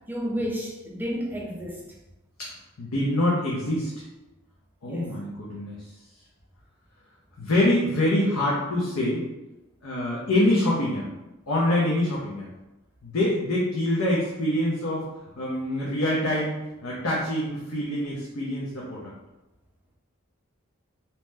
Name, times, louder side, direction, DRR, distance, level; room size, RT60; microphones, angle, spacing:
voice 1, 0.1-1.8 4.9-5.1, equal, 10° right, -2 dB, 0.4 m, -31 dB
voice 2, 2.8-3.9 4.8-5.8 7.4-9.2 9.8-11.1 11.5-12.5 13.0-15.1 15.4-19.1, left 1 dB, 80° left, -5 dB, 0.6 m, -25 dB
2.8 x 2.0 x 3.3 m, 1.0 s
head